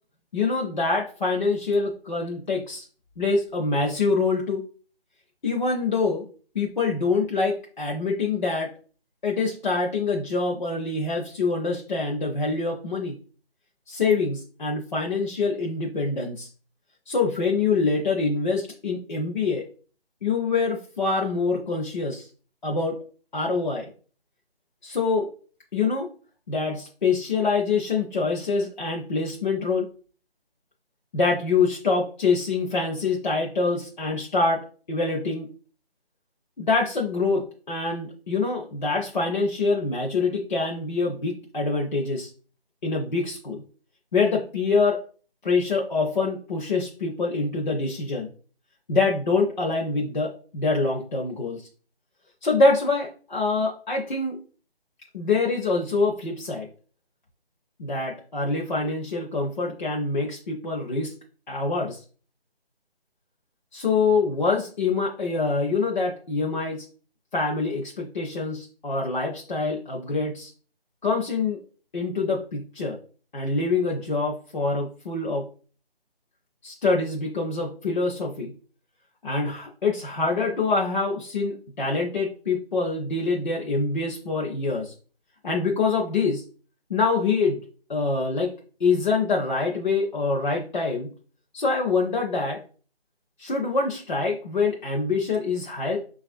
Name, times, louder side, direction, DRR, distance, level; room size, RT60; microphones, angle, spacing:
voice 1, 0.3-2.9 3.2-4.6 5.4-6.2 6.5-8.7 9.2-13.2 13.9-16.5 17.1-19.6 20.2-22.3 22.6-22.9 23.3-23.9 24.8-25.3 25.7-26.1 26.5-29.9 31.1-35.5 36.6-42.3 42.8-43.6 44.1-45.0 45.4-48.3 48.9-51.6 52.4-54.4 55.1-56.7 57.8-61.1 61.5-62.0 63.7-66.8 67.3-70.5 71.0-71.6 71.9-73.0 73.3-75.5 76.6-78.5 79.2-84.9 85.4-86.4 86.9-87.6 87.9-88.5 88.8-91.1 91.5-92.6 93.4-96.0, left 4 dB, 50° left, -1 dB, 0.7 m, -25 dB
5.7 x 2.4 x 2.5 m, 0.40 s
figure-of-eight pair, 160°, 30 cm